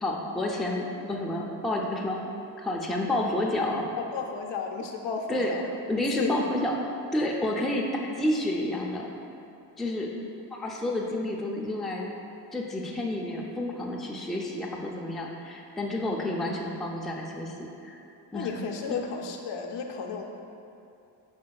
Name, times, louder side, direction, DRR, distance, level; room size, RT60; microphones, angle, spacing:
voice 1, 0.0-2.2 2.6-3.9 5.3-5.6 5.9-6.8 7.1-9.1 9.8-10.1 10.5-12.1 12.5-17.5 17.8-18.0 18.3-18.6 18.9-19.0, left 1 dB, ahead, -1 dB, 0.3 m, -30 dB
voice 2, 4.0-5.7 6.0-6.4 18.3-20.2, left 5 dB, 80° left, 2 dB, 0.5 m, -33 dB
5.1 x 3.5 x 2.3 m, 2.7 s
cardioid pair, 70°, 43 cm